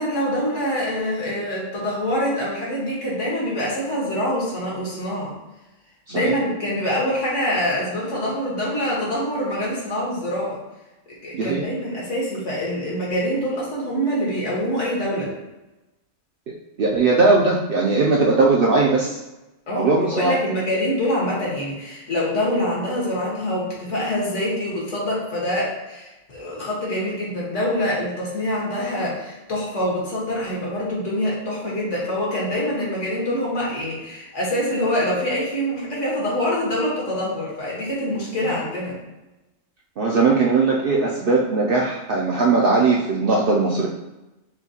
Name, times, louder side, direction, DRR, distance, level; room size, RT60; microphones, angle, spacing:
voice 1, 0.0-5.3 6.1-10.6 11.1-15.3 19.7-39.0, equal, 65° left, -5 dB, 1.7 m, -25 dB
voice 2, 11.3-11.6 16.8-19.2 19.8-20.3 40.0-43.9, right 3 dB, 65° right, -3 dB, 0.6 m, -19 dB
6.2 x 2.3 x 2.8 m, 1.0 s
omnidirectional pair, 1.3 m